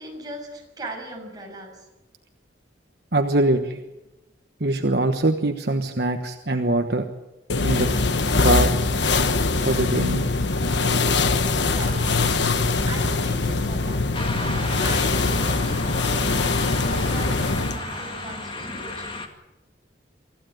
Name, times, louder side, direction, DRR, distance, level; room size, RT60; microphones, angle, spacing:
voice 1, 0.0-1.9 11.5-12.3 12.9-14.0 14.8-19.1, right 1 dB, 20° right, 0 dB, 6.4 m, -39 dB
voice 2, 3.1-3.8 4.6-7.1 7.6-7.9 8.4-8.7 9.5-10.3, right 2 dB, 60° right, 5 dB, 1.2 m, -22 dB
sound 1, 7.5-17.8, left 3 dB, 70° left, 1.2 m, -22 dB
Breathing, 9.6-11.3 11.6-16.2 16.7-18.6, right 2 dB, 35° right, 6.0 m, -43 dB
sound 2, 14.1-19.3, left 2 dB, 25° left, 2.1 m, -33 dB
25.0 x 15.0 x 9.2 m, 1.0 s
head